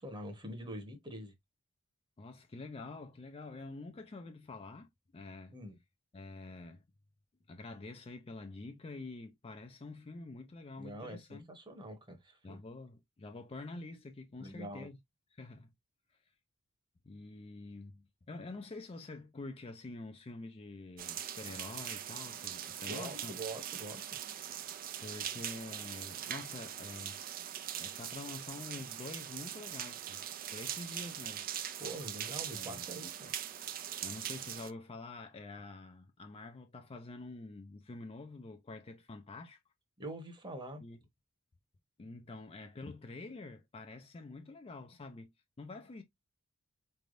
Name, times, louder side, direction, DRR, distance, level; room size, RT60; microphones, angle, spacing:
voice 1, 0.0-1.3 5.5-5.8 10.8-12.6 14.4-14.9 22.9-24.2 31.8-33.3 40.0-40.8, right 1 dB, 20° right, 1.0 m, -45 dB
voice 2, 2.2-5.6 6.1-6.9 7.5-11.5 12.4-15.0 15.3-15.7 17.0-23.3 25.0-27.2 27.8-30.2 30.5-31.5 32.5-32.9 34.0-39.6 40.8-41.0 42.0-45.3 45.6-46.0, left 3 dB, 25° left, 0.4 m, -47 dB
sound 1, 21.0-34.7, right 10 dB, 40° right, 0.4 m, -42 dB
4.4 x 3.3 x 2.5 m
head